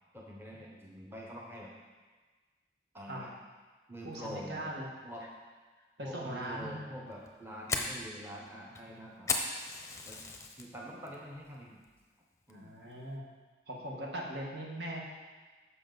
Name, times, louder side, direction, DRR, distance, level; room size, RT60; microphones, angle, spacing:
voice 1, 0.1-1.7 2.9-3.3 3.9-4.7 5.0-5.2 6.0-9.3 10.0-10.2 10.5-11.8 12.5-12.7, equal, 15° right, -3 dB, 0.9 m, -45 dB
voice 2, 4.0-4.9 6.0-6.8 9.0-9.1 12.5-13.2 13.7-15.0, right 1 dB, 70° right, -2 dB, 1.5 m, -40 dB
Fire, 7.1-10.7 11.1-11.5 11.8-12.0 12.5-12.8, left 4 dB, 15° left, 0.7 m, -36 dB
9.9 x 6.5 x 4.0 m, 1.4 s
head